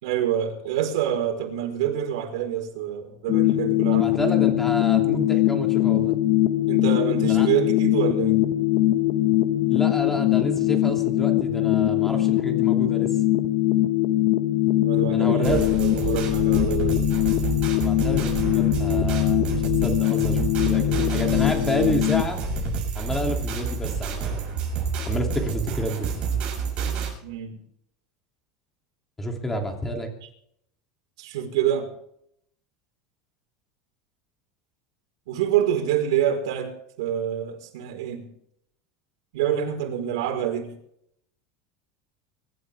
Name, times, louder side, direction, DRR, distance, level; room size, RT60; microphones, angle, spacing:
voice 1, 0.0-4.2 6.7-8.4 14.8-17.0 27.2-27.6 31.2-31.9 35.3-38.3 39.3-40.8, right 10 dB, 85° right, 4.8 m, -26 dB
sound 1, 3.3-22.3, left 15 dB, 55° left, 1.5 m, -22 dB
voice 2, 3.9-6.1 7.3-7.5 9.7-13.2 15.1-15.7 17.8-22.4 22.9-24.6 25.1-26.1 29.2-30.1, equal, 10° left, 3.0 m, -30 dB
sound 2, 15.4-27.1, right 5 dB, 35° right, 7.1 m, -29 dB
24.5 x 12.5 x 3.6 m
supercardioid pair, 150°, 3 cm